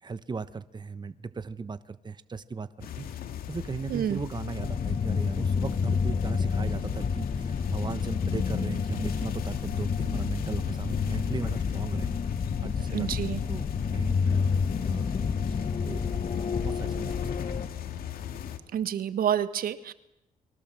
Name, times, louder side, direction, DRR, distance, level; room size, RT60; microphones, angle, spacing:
voice 1, 0.0-3.1 3.5-12.2 12.6-13.1 13.5-14.4 14.9-15.1 15.5-16.0 16.6-17.4, right 4 dB, 30° right, 13 dB, 1.1 m, -37 dB
sound 1, 2.8-18.6, left 9 dB, 80° left, 2.3 m, -38 dB
voice 2, 3.9-4.2 12.9-13.4 18.7-19.9, right 9 dB, 75° right, 12 dB, 1.5 m, -28 dB
sound 2, 4.6-17.7, left 5 dB, 40° left, 1.2 m, -29 dB
29.5 x 23.0 x 7.7 m, 0.85 s
cardioid pair, 80°, 15 cm